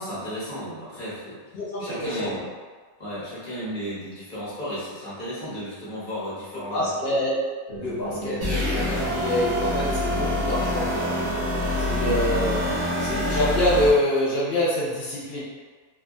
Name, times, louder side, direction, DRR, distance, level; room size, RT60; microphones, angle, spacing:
voice 1, 0.0-1.4 1.8-2.5 3.0-6.9 8.1-8.3 11.8-12.2, equal, 35° left, -10 dB, 0.9 m, -34 dB
voice 2, 1.5-2.4 6.5-7.4 7.8-11.2 11.8-12.6 13.0-15.4, left 1 dB, 90° left, -7 dB, 0.5 m, -26 dB
sound 1, 7.7-13.4, right 2 dB, 65° left, 1.0 m, -34 dB
sound 2, 8.4-13.9, left 1 dB, 45° right, 0.6 m, -26 dB
2.7 x 2.2 x 2.5 m, 1.5 s
omnidirectional pair, 1.7 m